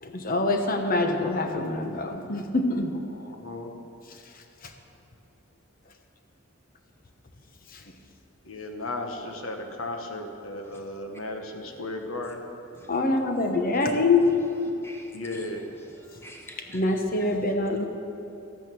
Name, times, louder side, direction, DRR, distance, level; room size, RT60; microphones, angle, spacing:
voice 1, 0.0-2.9 4.6-4.7 7.7-7.8 12.9-14.3 14.6-14.7 16.7-17.8, left 2 dB, 45° left, 4 dB, 1.1 m, -25 dB
voice 2, 3.1-3.7 8.4-12.4 15.1-15.7, left 2 dB, 80° left, 4 dB, 1.2 m, -35 dB
voice 3, 14.8-15.5 15.9-16.8, left 1 dB, 10° left, 1 dB, 1.1 m, -48 dB
13.5 x 9.1 x 6.2 m, 2.8 s
head